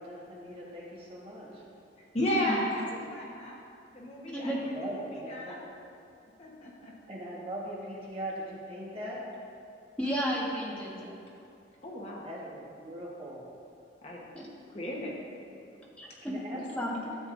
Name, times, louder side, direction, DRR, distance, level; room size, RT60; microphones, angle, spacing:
voice 1, 0.0-1.7 2.9-3.0 4.6-5.6 7.1-9.3 12.2-13.5 15.5-15.6 16.2-17.2, equal, 30° right, -5 dB, 1.5 m, -41 dB
voice 2, 2.1-3.5 3.9-5.6 6.4-6.9 10.1-10.2 11.8-12.3 14.0-14.2 14.7-15.1, equal, 35° left, -4 dB, 1.2 m, -34 dB
voice 3, 10.0-11.2 14.3-14.5 16.0-17.0, equal, 5° left, -6 dB, 1.5 m, -33 dB
13.0 x 7.8 x 2.6 m, 2.5 s
head